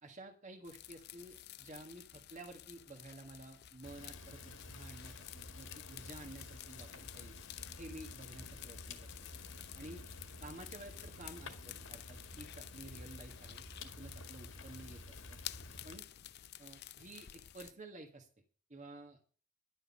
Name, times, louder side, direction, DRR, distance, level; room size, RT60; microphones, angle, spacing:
voice 1, 0.0-7.3 7.8-9.1 9.7-10.0 10.4-15.4 15.8-16.1 16.6-18.3 18.7-19.2, right 1 dB, 40° right, 2 dB, 1.6 m, -52 dB
sound 1, 0.6-17.7, left 13 dB, 55° left, 0.5 m, -52 dB
Fire, 3.8-16.0, left 2 dB, 85° left, 2.1 m, -51 dB
11.5 x 6.3 x 8.5 m, 0.39 s
head